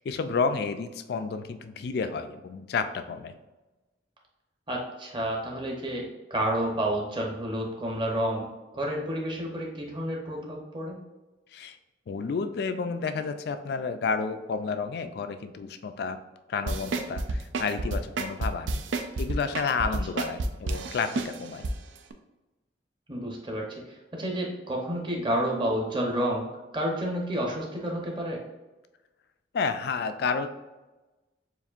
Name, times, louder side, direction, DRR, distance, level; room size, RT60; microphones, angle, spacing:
voice 1, 0.0-3.4 11.5-11.8 12.1-16.2 16.5-18.8 19.2-21.7 29.5-30.5, left 5 dB, 60° left, 9 dB, 0.3 m, -30 dB
voice 2, 4.7-8.5 8.7-11.0 23.1-26.5 26.7-28.4, right 1 dB, 25° right, -1 dB, 0.8 m, -30 dB
sound 1, 16.7-21.7 22.1-22.2, right 2 dB, 85° right, 0.4 m, -30 dB
7.0 x 2.5 x 2.5 m, 1.1 s
head